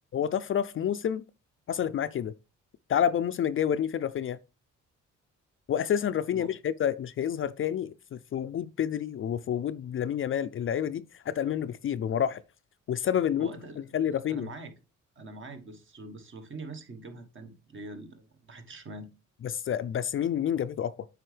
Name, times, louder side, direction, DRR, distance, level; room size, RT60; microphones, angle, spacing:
voice 1, 0.1-1.2 1.7-2.3 2.9-4.4 5.7-12.4 12.9-13.5 13.9-14.5 19.4-21.1, left 9 dB, 45° left, 0.4 m, -29 dB
voice 2, 13.4-13.8 14.3-14.7 15.2-19.1, right 3 dB, 40° right, 1.3 m, -43 dB
7.5 x 4.8 x 3.3 m
cardioid pair, 90°, 30 cm